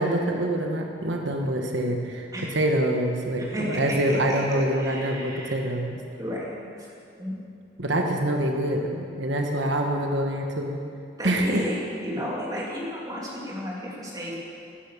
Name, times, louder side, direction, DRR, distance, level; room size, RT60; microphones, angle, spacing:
voice 1, 0.0-2.3 2.5-6.0 7.8-10.8 11.2-11.6, right 1 dB, 90° right, 2 dB, 1.2 m, -25 dB
voice 2, 3.4-5.6 6.2-6.9 7.2-7.4 11.2-14.4, equal, 20° right, -4 dB, 2.7 m, -33 dB
12.5 x 9.8 x 7.3 m, 2.4 s
head